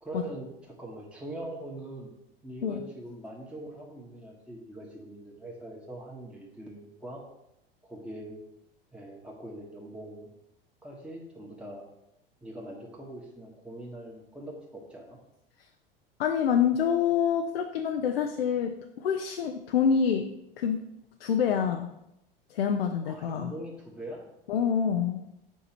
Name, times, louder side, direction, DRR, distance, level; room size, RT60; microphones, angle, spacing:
voice 1, 0.0-2.1 2.4-7.2 7.8-8.4 8.9-10.3 10.8-11.8 12.4-15.2 23.0-24.2, right 1 dB, 5° right, -3 dB, 1.6 m, -42 dB
voice 2, 16.2-20.3 20.6-20.8 21.2-21.9 22.5-23.5 24.5-25.2, left 7 dB, 80° left, 5 dB, 0.6 m, -26 dB
7.3 x 4.8 x 4.3 m, 0.84 s
hypercardioid pair, 85°, 30 cm